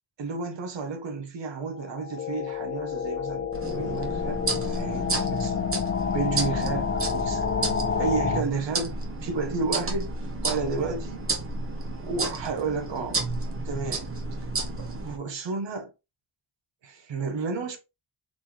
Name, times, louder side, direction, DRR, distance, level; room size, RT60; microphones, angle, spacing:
voice 1, 0.2-5.6 6.0-7.5 8.0-10.1 10.4-11.2 12.0-13.2 13.6-14.1 14.8-15.9 16.8-17.8, right 4 dB, 80° right, 1.0 m, -32 dB
sound 1, 1.8-8.4, left 6 dB, 30° left, 0.4 m, -29 dB
sound 2, 3.5-15.2, right 3 dB, 30° right, 0.9 m, -32 dB
4.2 x 3.0 x 3.4 m
wide cardioid pair, 140°, 43 cm